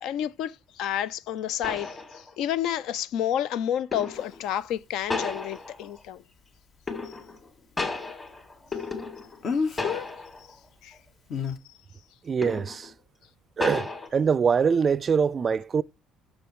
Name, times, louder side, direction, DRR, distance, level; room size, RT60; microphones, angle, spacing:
voice 1, 0.0-6.2 7.0-7.1 10.8-10.9, left 10 dB, 75° left, 0.5 m, -30 dB
sound 1, 1.6-2.6 3.9-4.4 5.1-6.0 6.9-7.5 7.8-9.5 9.8-10.5 10.9-11.1 12.4-12.9 13.6-14.1, left 3 dB, 25° left, 2.9 m, -33 dB
Speech, 4.1-4.2 9.4-10.1 11.3-11.6, left 5 dB, 55° left, 1.4 m, -28 dB
voice 2, 12.2-12.9 13.6-15.8, right 6 dB, 40° right, 0.4 m, -24 dB
6.7 x 6.4 x 4.7 m
supercardioid pair, 70°, 0 cm